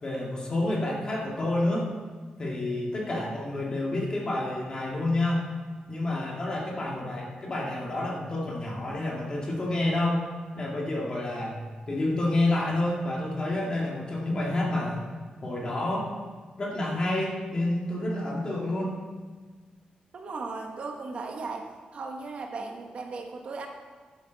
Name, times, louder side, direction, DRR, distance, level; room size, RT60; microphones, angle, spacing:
voice 1, 0.0-1.9 2.4-5.5 5.9-10.2 10.5-11.6 11.9-15.0 15.4-16.1 16.6-19.0, left 1 dB, 30° left, -2 dB, 2.2 m, -29 dB
voice 2, 20.1-23.7, right 3 dB, 50° right, 3 dB, 1.1 m, -37 dB
12.5 x 11.0 x 4.0 m, 1.4 s
wide cardioid pair, 175°, 3 cm